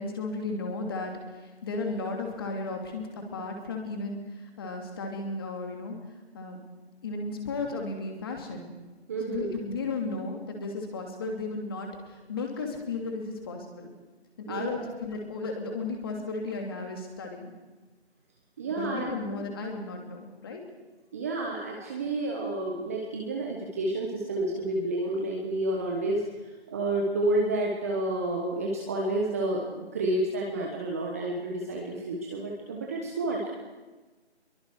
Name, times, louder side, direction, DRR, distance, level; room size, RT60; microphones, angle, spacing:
voice 1, 0.0-6.0 6.3-6.6 7.0-8.7 9.2-13.9 14.4-17.5 18.7-20.6, left 3 dB, 20° left, 2 dB, 2.9 m, -34 dB
voice 2, 9.1-9.5 14.5-14.8 18.6-19.4 21.1-26.2 26.7-33.5, right 2 dB, 15° right, -1 dB, 1.3 m, -30 dB
27.5 x 23.0 x 4.9 m, 1.2 s
figure-of-eight pair, 165°, 33 cm